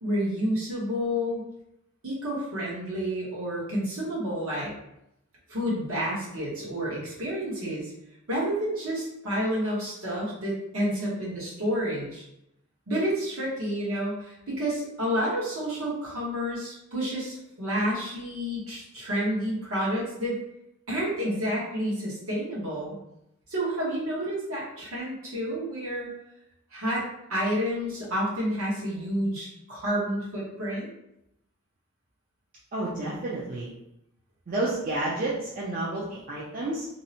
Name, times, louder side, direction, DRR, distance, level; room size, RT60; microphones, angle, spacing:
voice 1, 0.0-1.4 2.0-4.8 5.5-7.9 8.3-12.2 12.9-20.4 20.9-23.0 23.5-26.1 26.7-30.9, equal, 65° right, -5 dB, 1.0 m, -29 dB
voice 2, 32.7-33.7 34.5-36.9, right 2 dB, 35° right, -6 dB, 0.4 m, -30 dB
2.6 x 2.0 x 2.7 m, 0.82 s
head